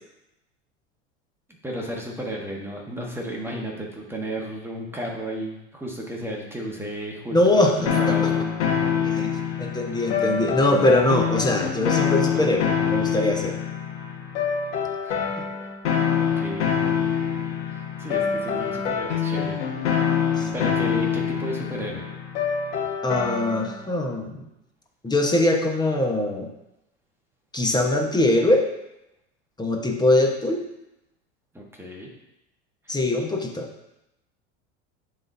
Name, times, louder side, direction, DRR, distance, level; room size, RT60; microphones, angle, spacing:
voice 1, 1.6-8.4 15.0-15.5 15.9-16.7 17.6-19.5 20.5-22.0 31.5-32.1 32.8-32.9, right 1 dB, 5° right, -2 dB, 1.4 m, -33 dB
voice 2, 7.3-7.7 9.1-9.3 9.6-13.6 20.4-20.5 23.0-24.4 25.0-26.5 27.5-28.6 29.6-30.6 32.9-33.7, left 1 dB, 10° left, 1 dB, 1.2 m, -22 dB
sound 1, 7.9-23.8, left 7 dB, 75° left, 1.7 m, -25 dB
11.0 x 4.0 x 2.7 m, 0.90 s
hypercardioid pair, 90°, 35 cm